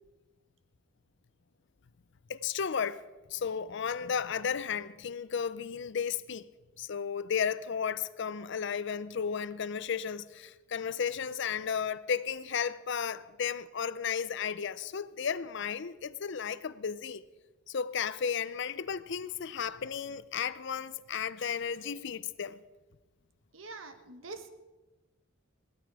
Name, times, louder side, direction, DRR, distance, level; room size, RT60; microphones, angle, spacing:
voice 1, 2.3-3.0 3.3-6.5 6.8-17.2 17.7-22.6, left 7 dB, 60° left, 0.5 m, -34 dB
voice 2, 23.5-24.5, right 3 dB, 75° right, 1.3 m, -44 dB
17.0 x 12.5 x 4.8 m
head